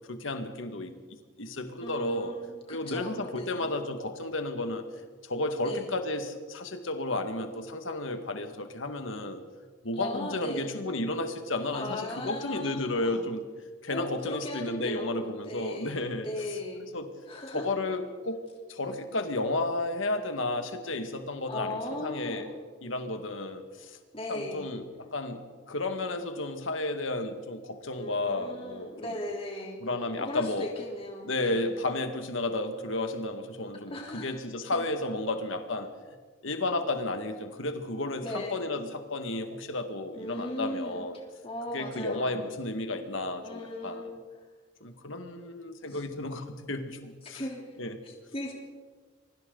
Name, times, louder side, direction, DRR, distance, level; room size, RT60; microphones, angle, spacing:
voice 1, 0.1-0.9 1.4-2.3 2.7-4.8 5.2-9.4 9.8-13.4 13.8-16.3 16.9-17.1 17.5-18.4 18.7-22.5 22.8-24.0 24.3-24.8 25.1-25.4 25.7-28.9 29.8-30.7 31.2-35.9 36.4-41.2 41.7-44.1 44.8-47.4 47.8-48.0, left 2 dB, 80° left, 6 dB, 1.9 m, -32 dB
voice 2, 1.8-3.8 5.6-5.9 10.0-10.7 11.7-13.2 13.9-16.0 16.2-16.9 17.3-17.7 21.5-22.6 24.1-24.7 28.0-29.8 30.2-31.7 33.9-34.4 34.7-34.8 38.2-38.6 40.1-42.4 43.4-44.2 45.9-46.0 47.3-47.6 48.0-48.5, left 1 dB, 30° left, -1 dB, 3.5 m, -38 dB
27.0 x 24.0 x 4.0 m, 1.4 s
head